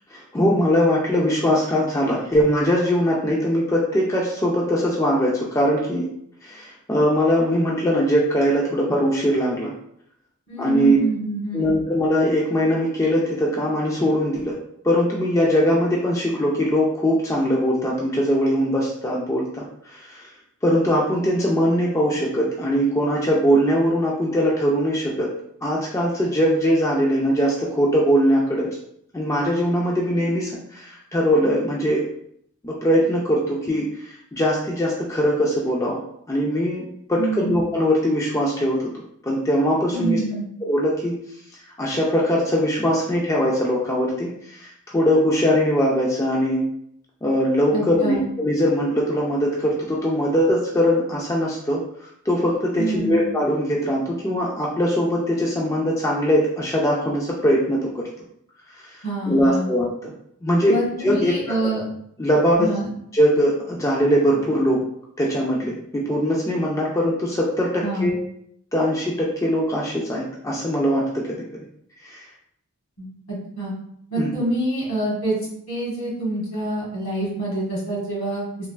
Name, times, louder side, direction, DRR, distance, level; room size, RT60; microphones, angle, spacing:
voice 1, 0.1-6.1 6.4-9.7 10.6-11.0 11.5-14.6 14.8-20.3 20.6-25.3 25.6-28.7 29.1-32.1 32.6-36.0 36.3-38.8 39.2-40.2 40.6-41.2 41.8-46.6 47.2-51.8 52.3-58.1 58.7-58.8 59.3-60.1 60.4-60.8 61.0-61.6 62.2-62.7 63.1-64.8 65.2-68.2 68.7-71.5 72.0-72.2 74.2-74.3, equal, 15° left, -3 dB, 0.3 m, -21 dB
voice 2, 10.5-11.8 37.2-37.6 39.9-40.5 47.7-48.2 52.7-53.2 59.0-59.7 60.7-61.8 62.6-62.8 67.8-68.1 73.0-73.1 73.6-73.7 74.1-75.4 75.7-78.4, right 2 dB, 70° left, -5 dB, 1.4 m, -26 dB
3.2 x 2.3 x 2.3 m, 0.71 s
head